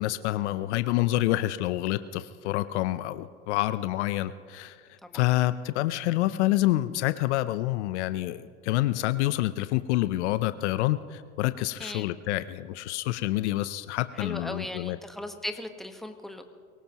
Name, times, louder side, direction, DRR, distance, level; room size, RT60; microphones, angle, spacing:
voice 1, 0.0-15.0, left 16 dB, 70° left, 14 dB, 0.7 m, -27 dB
voice 2, 11.8-12.1 14.1-16.5, left 1 dB, ahead, 5 dB, 1.4 m, -38 dB
23.5 x 18.0 x 3.0 m, 2.1 s
hypercardioid pair, 95°, 36 cm